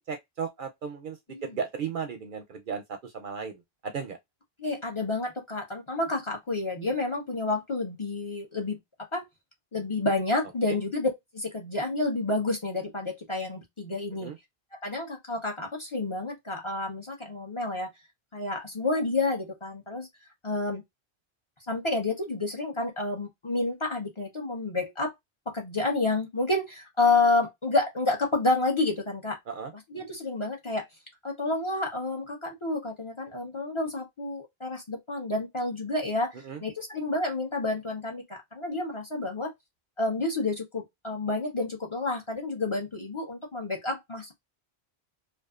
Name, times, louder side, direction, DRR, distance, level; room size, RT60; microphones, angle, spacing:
voice 1, 0.1-1.2 1.4-4.2 14.2-14.4 29.5-29.7 36.5-36.6, right 6 dB, 60° right, 0.6 m, -35 dB
voice 2, 4.6-8.8 9.1-9.3 9.7-14.3 14.8-17.9 18.3-20.1 20.4-20.8 21.7-25.1 25.5-29.4 29.7-30.9 31.2-39.5 40.0-44.3, left 2 dB, 35° left, 0.6 m, -29 dB
2.4 x 2.4 x 2.3 m
omnidirectional pair, 1.1 m